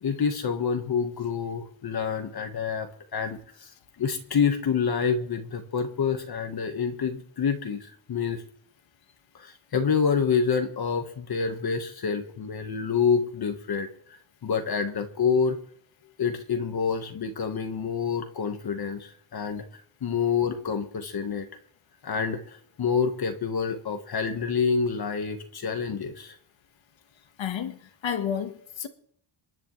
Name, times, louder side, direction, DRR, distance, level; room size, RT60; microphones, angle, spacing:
voice 1, 0.0-3.7 4.0-8.4 9.3-13.9 14.4-15.6 16.2-19.6 20.0-21.5 22.0-26.3, left 6 dB, 50° left, 1.4 m, -27 dB
voice 2, 27.4-27.8 28.0-28.9, left 8 dB, 70° left, 1.5 m, -30 dB
27.5 x 10.0 x 3.2 m
cardioid pair, 115°, 47 cm